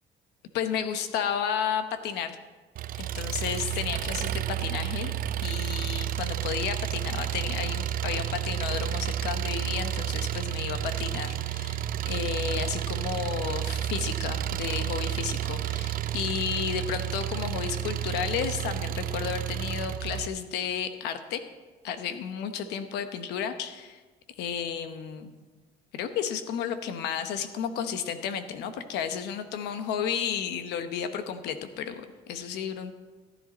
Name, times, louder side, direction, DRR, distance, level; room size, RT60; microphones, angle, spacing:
voice 1, 0.5-2.4 3.0-5.1 5.4-21.4 21.8-24.0 24.4-25.3 25.9-32.9, left 8 dB, 85° left, 9 dB, 1.0 m, -32 dB
Engine, 2.8-20.3, right 11 dB, 60° right, 0.5 m, -31 dB
14.5 x 10.0 x 4.1 m, 1.3 s
cardioid pair, 110°, 17 cm